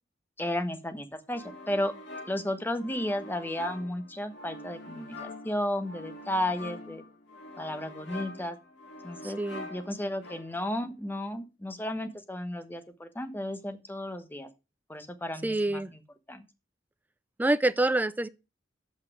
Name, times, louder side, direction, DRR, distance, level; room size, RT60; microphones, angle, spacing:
voice 1, 0.4-1.9 2.3-7.0 7.6-8.6 9.0-9.4 9.7-14.5 14.9-15.8 16.3-16.4, left 1 dB, 10° left, 1.1 m, -33 dB
sound 1, 1.3-10.8, left 2 dB, 70° left, 2.5 m, -45 dB
voice 2, 9.2-9.7 15.4-15.9 17.4-18.3, right 2 dB, 10° right, 0.4 m, -26 dB
7.9 x 5.8 x 6.1 m
head